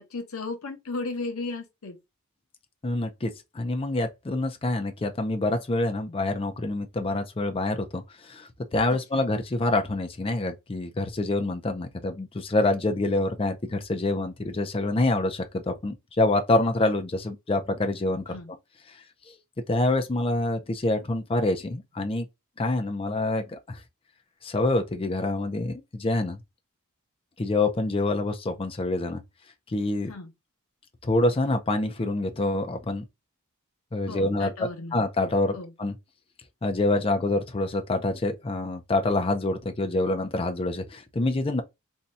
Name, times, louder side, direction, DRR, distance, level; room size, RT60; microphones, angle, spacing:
voice 1, 0.0-2.0 8.9-9.2 18.3-18.5 30.1-30.3 34.1-35.0 35.5-35.7, left 3 dB, 70° left, 0.8 m, -35 dB
voice 2, 2.8-18.4 19.3-19.4 19.7-22.3 22.6-23.8 24.4-26.4 27.4-29.2 29.7-30.1 31.0-33.0 33.9-35.9 36.6-41.6, left 2 dB, 25° left, 0.5 m, -26 dB
2.7 x 2.3 x 4.0 m
head